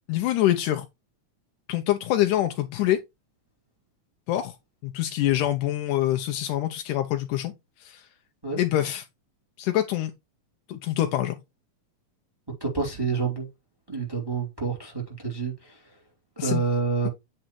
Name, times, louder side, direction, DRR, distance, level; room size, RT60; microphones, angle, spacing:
voice 1, 0.1-0.8 1.7-3.0 4.3-4.6 4.8-7.5 7.8-8.1 8.6-9.1 9.6-10.1 10.7-11.4 16.4-16.6, left 13 dB, 85° left, 2.3 m, -25 dB
voice 2, 12.6-13.5 13.9-15.7 16.4-17.1, right 5 dB, 10° right, 2.2 m, -28 dB
8.8 x 3.9 x 4.5 m
omnidirectional pair, 3.6 m